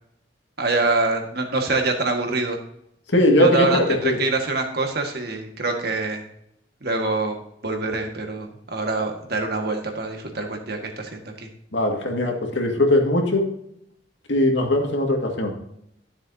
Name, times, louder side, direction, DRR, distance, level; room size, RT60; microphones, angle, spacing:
voice 1, 0.6-2.6 3.4-6.2 6.8-7.4 7.6-11.5, right 3 dB, 55° right, 3 dB, 1.7 m, -25 dB
voice 2, 3.1-4.2 11.7-13.5 14.3-15.5, left 1 dB, 75° left, 1 dB, 2.1 m, -20 dB
13.0 x 7.1 x 2.8 m, 0.75 s
head